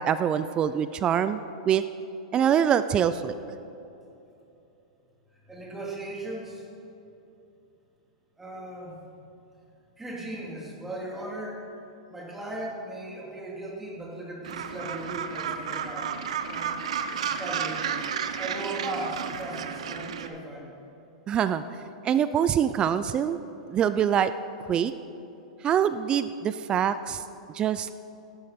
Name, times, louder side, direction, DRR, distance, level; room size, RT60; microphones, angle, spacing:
voice 1, 0.0-1.4 1.7-1.8 2.3-3.3 21.3-21.6 22.0-23.4 23.7-24.3 24.7-24.9 25.6-27.2 27.5-27.9, right 9 dB, 25° right, 13 dB, 0.4 m, -24 dB
voice 2, 5.5-6.7 8.4-8.9 10.0-11.6 12.1-16.1 16.5-16.8 17.2-17.9 18.1-20.7, right 1 dB, 10° right, -4 dB, 3.3 m, -37 dB
Gull seagull, 14.4-20.3, right 7 dB, 75° right, 0.8 m, -32 dB
14.5 x 12.0 x 4.3 m, 2.9 s
hypercardioid pair, 125°, 3 cm